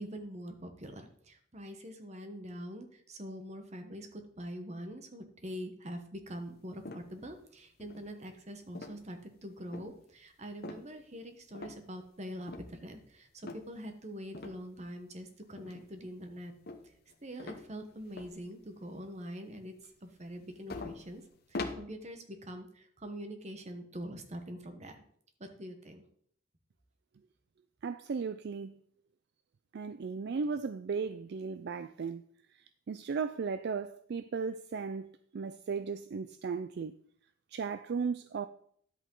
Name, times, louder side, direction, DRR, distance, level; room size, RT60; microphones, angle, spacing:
voice 1, 0.0-16.5 17.2-21.2 21.5-25.0 25.4-26.1, equal, 35° right, 1.1 m, -44 dB
sound 1, 6.8-7.3 7.8-8.3 8.7-9.2 9.7-10.0 10.6-11.0 11.5-12.1 12.5-12.7 13.4-13.7 14.3-14.6 15.6-16.1 16.7-17.1 17.4-18.4 18.8-18.9 20.3-20.4 20.7-21.7, left 3 dB, 50° left, 1.0 m, -43 dB
voice 2, 27.8-28.7 29.7-32.2 32.5-36.9 37.5-38.5, right 5 dB, 55° right, 0.4 m, -36 dB
10.5 x 8.1 x 3.9 m
head